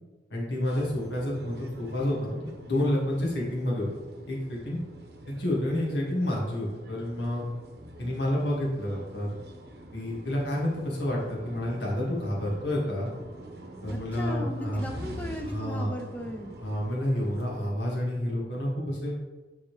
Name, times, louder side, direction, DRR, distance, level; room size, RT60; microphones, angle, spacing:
voice 1, 0.3-3.9 4.3-4.8 5.3-7.4 8.0-9.3 9.9-13.1 13.8-14.8 15.4-15.9 16.6-19.1, left 1 dB, 80° left, -4 dB, 2.0 m, -29 dB
sound 1, 0.6-17.7, right 1 dB, 65° right, 0.9 m, -45 dB
voice 2, 13.9-16.5, equal, 10° left, 3 dB, 0.6 m, -36 dB
9.6 x 4.1 x 3.3 m, 1.2 s
head